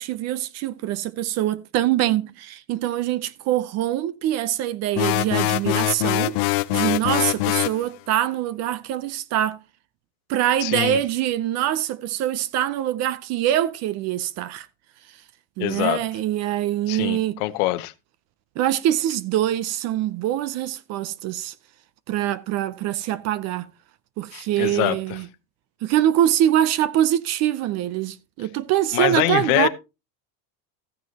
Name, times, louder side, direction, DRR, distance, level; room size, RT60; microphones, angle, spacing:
voice 1, 0.0-9.6 10.3-14.7 15.1-15.2 15.6-17.4 18.6-21.5 22.1-23.7 24.2-25.3 25.8-29.7, right 12 dB, 35° right, 0.5 m, -24 dB
sound 1, 5.0-7.8, left 19 dB, 55° left, 0.6 m, -23 dB
voice 2, 10.6-11.0 15.6-16.0 16.9-17.9 24.3-25.2 28.9-29.7, left 18 dB, 70° left, 1.0 m, -24 dB
14.5 x 9.3 x 2.8 m
supercardioid pair, 150°, 45 cm